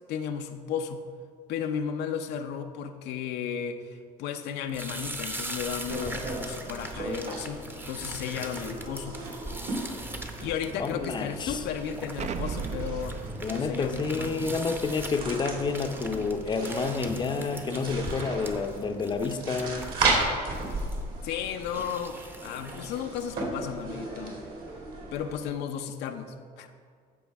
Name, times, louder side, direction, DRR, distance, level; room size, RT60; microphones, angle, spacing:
voice 1, 0.1-1.0 1.5-9.2 10.4-13.2 13.5-14.3 21.2-24.4 25.1-26.7, left 8 dB, 85° left, 6 dB, 0.6 m, -34 dB
sound 1, 4.7-23.4, right 1 dB, 10° right, 0.8 m, -42 dB
sound 2, 5.9-25.4, right 2 dB, 60° right, 2.4 m, -35 dB
voice 2, 10.8-11.6 13.4-19.9, left 4 dB, 25° left, 7 dB, 0.6 m, -29 dB
Explosion, 12.2-16.9, right 6 dB, 40° right, 0.5 m, -39 dB
15.0 x 5.0 x 3.4 m, 2.1 s
cardioid pair, 110°, 17 cm